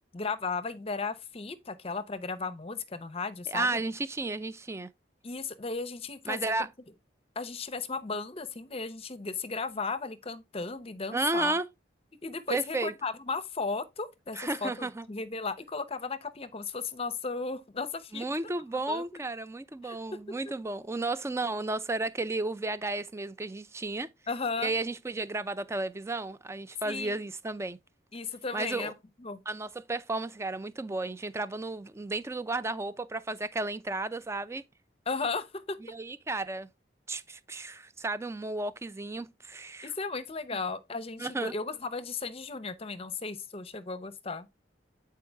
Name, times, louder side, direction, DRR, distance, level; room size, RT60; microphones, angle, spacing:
voice 1, 0.1-3.8 5.2-6.7 7.4-11.6 12.2-18.5 18.9-19.2 19.8-20.0 24.3-24.7 26.8-27.2 28.1-28.9 29.2-29.4 35.1-35.8 39.8-44.5, left 4 dB, 30° left, 0.7 m, -35 dB
voice 2, 3.5-4.9 6.3-6.7 11.1-11.7 12.5-12.9 14.4-15.1 18.1-24.1 24.6-27.8 28.5-28.9 29.5-34.6 35.9-36.7 37.1-39.9 40.5-40.6 41.2-41.5, right 2 dB, 15° right, 0.4 m, -33 dB
8.4 x 4.6 x 3.4 m
head